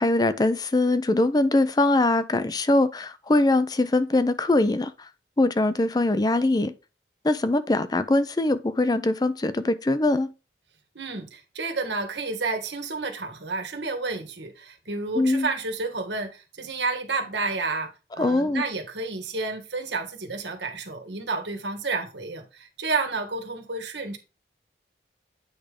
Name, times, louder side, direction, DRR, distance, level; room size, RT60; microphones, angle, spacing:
voice 1, 0.0-5.1 5.4-6.7 7.2-10.3 15.2-15.5 18.2-18.6, left 2 dB, 20° left, 0.5 m, -22 dB
voice 2, 10.9-24.2, right 3 dB, 85° right, 1.7 m, -30 dB
8.7 x 3.5 x 5.1 m
head